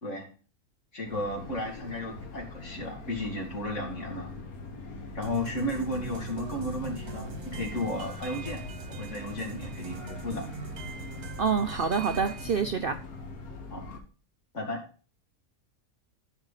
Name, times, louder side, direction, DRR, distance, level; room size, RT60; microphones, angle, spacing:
voice 1, 0.9-4.3 5.1-8.6 8.9-10.5 13.7-13.8 14.5-14.8, left 1 dB, 55° left, 1 dB, 2.8 m, -34 dB
sound 1, 1.1-14.0, left 3 dB, 75° left, 1.8 m, -42 dB
sound 2, 5.2-12.6, right 5 dB, 80° right, 1.8 m, -42 dB
voice 2, 11.4-13.0, right 5 dB, 55° right, 8 dB, 0.6 m, -27 dB
13.5 x 5.1 x 4.1 m, 0.38 s
omnidirectional pair, 1.5 m